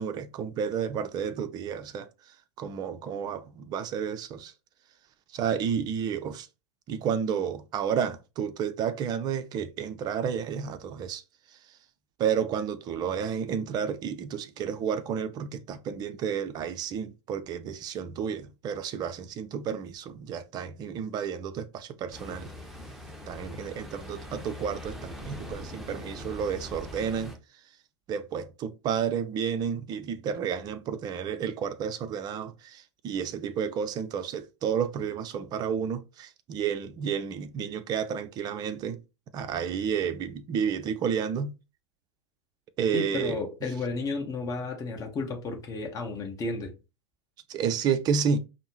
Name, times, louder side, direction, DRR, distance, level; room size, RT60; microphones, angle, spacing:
voice 1, 0.0-2.1 2.6-4.5 5.3-6.5 6.9-11.2 12.2-22.5 23.3-27.4 28.1-39.0 39.3-41.5 42.8-43.4 47.5-48.4, right 7 dB, 30° right, 0.5 m, -31 dB
Ocean, 22.1-27.4, left 1 dB, ahead, 0.9 m, -42 dB
voice 2, 42.9-46.7, left 3 dB, 25° left, 1.0 m, -32 dB
5.2 x 2.0 x 3.0 m
figure-of-eight pair, 90°, 15 cm